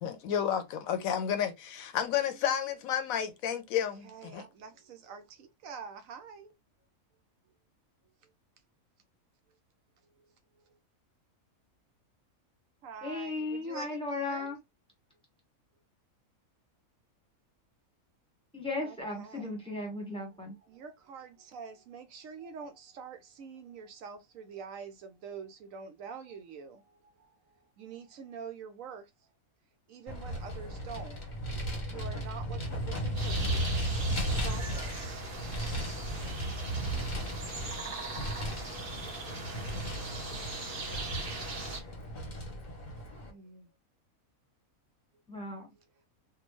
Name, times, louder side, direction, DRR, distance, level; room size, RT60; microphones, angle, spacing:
voice 1, 0.0-4.4, left 9 dB, 75° left, 1.0 m, -31 dB
voice 2, 2.1-2.4 3.8-6.5 10.7-10.8 12.8-14.5 18.8-19.5 20.6-27.3 27.8-29.1 29.9-31.2 31.9-35.2 41.9-42.5 43.1-43.7, right 6 dB, 70° right, 1.0 m, -47 dB
voice 3, 13.0-14.6 18.5-20.5 45.3-45.7, left 2 dB, 5° left, 1.0 m, -36 dB
Vehicle, 30.1-43.3, equal, 40° left, 0.8 m, -35 dB
sound 1, 33.2-41.8, right 3 dB, 45° right, 1.0 m, -40 dB
3.5 x 2.2 x 3.0 m
omnidirectional pair, 1.5 m